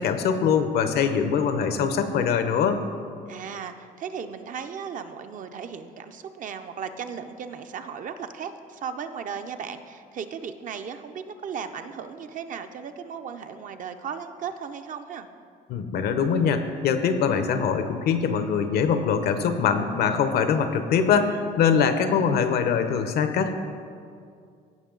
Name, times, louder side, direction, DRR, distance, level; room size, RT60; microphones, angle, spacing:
voice 1, 0.0-2.8 15.7-23.5, left 6 dB, 70° left, 9 dB, 0.8 m, -23 dB
voice 2, 3.3-15.3, right 7 dB, 50° right, 8 dB, 0.6 m, -36 dB
16.0 x 5.4 x 3.8 m, 2.3 s
cardioid pair, 110°, 17 cm